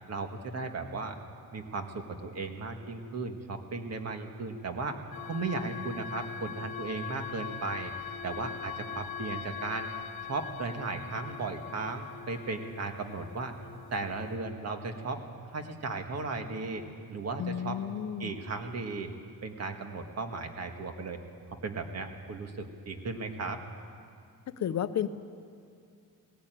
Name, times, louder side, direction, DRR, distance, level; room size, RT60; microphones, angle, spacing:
voice 1, 0.1-1.2 1.5-5.0 5.3-7.9 8.2-9.9 10.2-13.5 13.9-15.2 15.5-16.8 17.1-17.8 18.2-19.1 19.4-21.2 21.6-23.6, right 3 dB, 45° right, 5 dB, 1.7 m, -36 dB
sound 1, 5.1-14.4, left 8 dB, 85° left, 1.3 m, -42 dB
voice 2, 17.4-18.3 24.6-25.1, left 9 dB, 50° left, 12 dB, 0.7 m, -32 dB
18.0 x 15.5 x 9.1 m, 2.4 s
cardioid pair, 150°, 35 cm